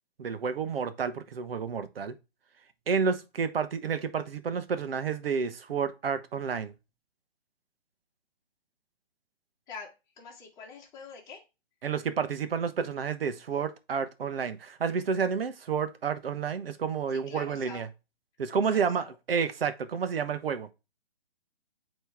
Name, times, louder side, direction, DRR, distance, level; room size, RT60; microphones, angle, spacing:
voice 1, 0.2-2.1 2.9-6.7 11.8-17.9 18.4-20.7, right 6 dB, 65° right, 1.0 m, -30 dB
voice 2, 9.7-11.4 17.3-17.9 18.7-19.1, left 5 dB, 10° left, 1.4 m, -45 dB
8.9 x 3.2 x 3.5 m
hypercardioid pair, 145°, 31 cm